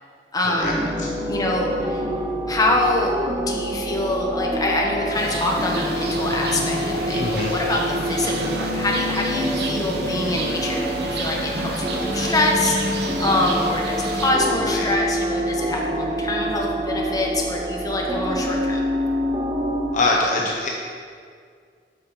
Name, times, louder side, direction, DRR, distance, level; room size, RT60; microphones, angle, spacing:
voice 1, 0.3-0.9 1.3-2.0 2.5-3.1 3.5-18.8, left 2 dB, 20° left, -2 dB, 1.1 m, -25 dB
sound 1, 0.6-20.0, equal, 25° right, 0.6 m, -26 dB
sound 2, 5.1-14.3, right 2 dB, 65° right, 0.9 m, -31 dB
voice 2, 7.2-7.6 14.6-14.9 19.9-20.7, left 2 dB, 45° left, -1 dB, 0.6 m, -23 dB
7.4 x 6.1 x 5.1 m, 2.1 s
head